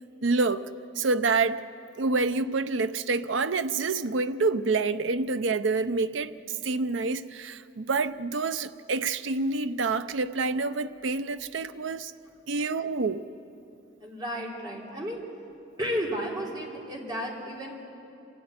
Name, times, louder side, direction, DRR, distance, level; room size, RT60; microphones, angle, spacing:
voice 1, 0.2-0.6 1.0-1.6 2.0-6.3 6.6-12.1 12.5-13.3, right 3 dB, 80° right, 12 dB, 0.7 m, -27 dB
voice 2, 14.0-15.2 15.8-17.7, equal, 25° right, -2 dB, 3.3 m, -33 dB
27.0 x 12.5 x 9.6 m, 2.7 s
head